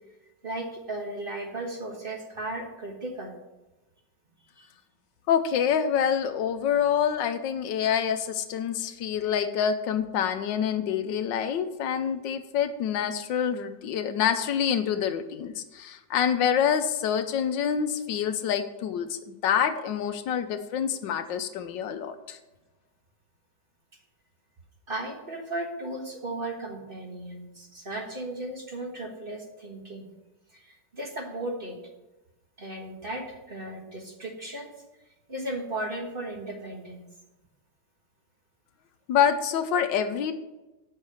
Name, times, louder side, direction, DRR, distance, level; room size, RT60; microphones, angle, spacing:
voice 1, 0.4-3.4 4.5-4.7 24.9-30.1 30.5-31.8 32.6-34.7 35.3-37.1, right 1 dB, 30° right, 1 dB, 1.4 m, -36 dB
voice 2, 5.3-22.4 39.1-40.3, left 8 dB, 80° left, 10 dB, 1.4 m, -26 dB
8.7 x 5.7 x 7.0 m, 1.0 s
omnidirectional pair, 2.0 m